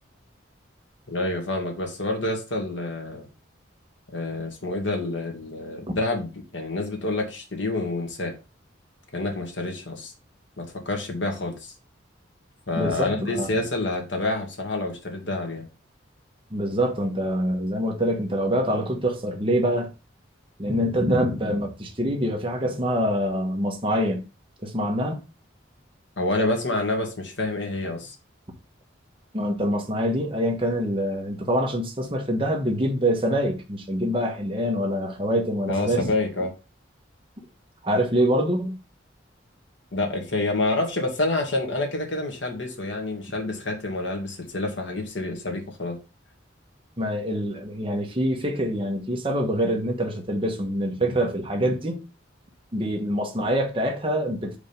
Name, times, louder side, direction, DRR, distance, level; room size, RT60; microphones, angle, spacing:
voice 1, 1.1-3.3 4.1-8.3 9.1-10.1 10.6-11.7 12.7-15.7 26.2-28.1 35.7-36.5 39.9-46.0, left 2 dB, 70° left, 1.9 m, -28 dB
voice 2, 12.8-13.5 16.5-19.9 20.6-24.2 24.6-25.2 29.3-36.1 37.8-38.8 47.0-52.0 52.7-54.5, equal, 25° right, 1.3 m, -25 dB
5.1 x 3.6 x 5.2 m
head